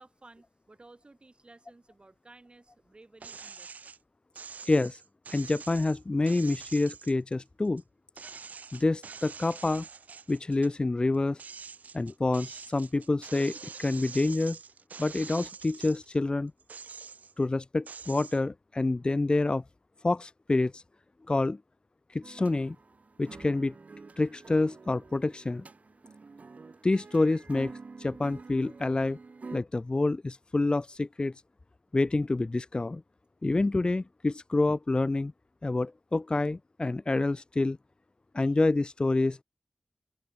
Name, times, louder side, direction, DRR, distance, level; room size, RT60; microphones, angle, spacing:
voice 1, 0.0-3.9 38.4-38.6, right 2 dB, 40° right, 7.6 m, -56 dB
sound 1, 3.2-4.0 4.4-7.8 8.2-10.7 11.1-16.2 16.6-17.4 17.9-18.4, right 5 dB, 90° right, 1.7 m, -45 dB
voice 2, 4.7-5.0 5.3-7.8 8.7-9.9 10.3-11.4 11.9-14.6 15.0-16.5 17.4-19.6 20.0-20.8 21.3-21.6 22.1-22.8 23.2-23.7 24.2-25.6 26.8-27.7 28.0-29.2 29.5-31.3 31.9-33.0 33.4-35.3 35.6-37.8 38.3-39.4, left 2 dB, 40° left, 0.6 m, -27 dB
sound 2, 22.2-29.6, right 4 dB, 65° right, 5.1 m, -48 dB
cardioid pair, 45°, 3 cm